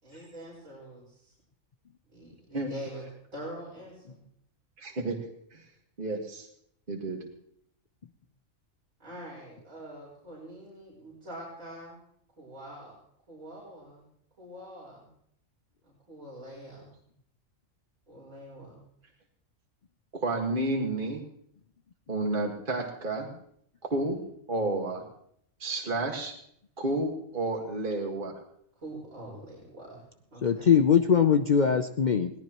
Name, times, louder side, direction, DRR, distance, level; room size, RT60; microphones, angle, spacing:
voice 1, 0.0-1.3 2.1-3.0 3.3-4.2 7.1-7.2 9.0-12.0 12.4-12.9 13.3-14.0 14.4-15.1 15.8-16.9 18.1-18.8 24.1-24.2 25.8-26.0 28.8-30.0 30.3-30.6, equal, 90° right, -7 dB, 5.4 m, -44 dB
voice 2, 4.8-5.2 5.5-5.6 6.0-6.5 6.9-7.2 20.1-21.2 22.1-23.3 23.8-24.2 24.5-25.0 25.6-26.3 26.8-28.4, right 2 dB, 40° right, 0 dB, 2.0 m, -30 dB
voice 3, 30.4-32.3, left 7 dB, 50° left, 8 dB, 0.6 m, -22 dB
21.0 x 17.5 x 3.0 m, 0.70 s
omnidirectional pair, 1.4 m